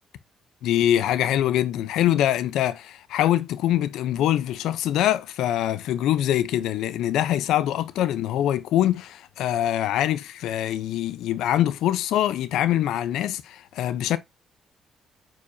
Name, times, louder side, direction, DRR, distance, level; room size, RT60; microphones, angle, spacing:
voice 1, 0.6-14.2, left 12 dB, 85° left, 0.7 m, -24 dB
8.7 x 4.7 x 2.7 m
cardioid pair, 90°, 0 cm